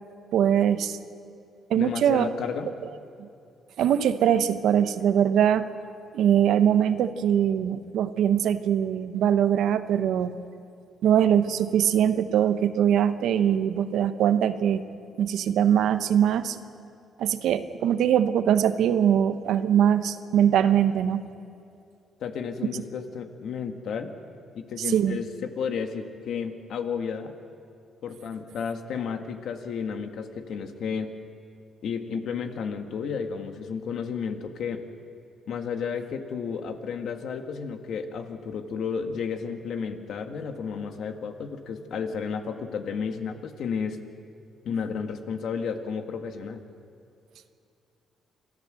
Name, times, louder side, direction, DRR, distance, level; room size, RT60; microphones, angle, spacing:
voice 1, 0.3-1.0 1.7-2.3 3.2-3.3 3.8-5.7 6.1-10.3 11.0-14.8 15.2-16.6 17.2-21.2 24.8-25.2, right 9 dB, 80° right, 11 dB, 1.0 m, -22 dB
voice 2, 1.8-2.7 22.2-24.1 24.5-27.3 28.0-31.1 31.8-34.9 35.5-44.0 44.7-46.6, left 6 dB, 70° left, 6 dB, 1.8 m, -32 dB
27.0 x 14.0 x 7.8 m, 2.5 s
cardioid pair, 90°, 0 cm